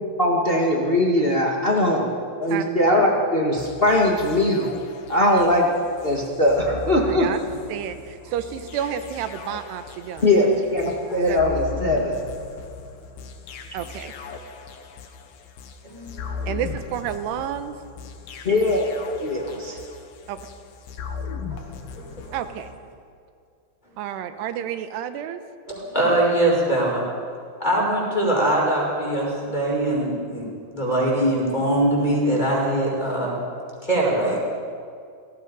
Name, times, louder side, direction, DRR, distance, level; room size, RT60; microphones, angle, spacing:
voice 1, 0.2-2.1 2.4-4.7 5.1-5.7 6.0-7.3 10.2-12.2 18.4-18.9 19.2-19.8, left 1 dB, 85° left, -2 dB, 0.5 m, -20 dB
sound 1, 3.6-22.8, left 5 dB, 65° left, 3.1 m, -38 dB
voice 2, 6.9-7.4 7.7-10.3 11.2-11.4 13.7-14.1 16.5-17.7 20.3-20.4 22.3-22.7 24.0-25.4, right 10 dB, 90° right, 9 dB, 3.1 m, -30 dB
voice 3, 15.8-16.5 18.4-18.5 19.4-19.5 21.5-21.6 21.9-22.4 25.7-27.0 27.6-30.4 30.7-33.4 33.8-34.4, right 1 dB, 10° left, -3 dB, 5.6 m, -22 dB
28.5 x 18.0 x 5.4 m, 2.3 s
omnidirectional pair, 4.7 m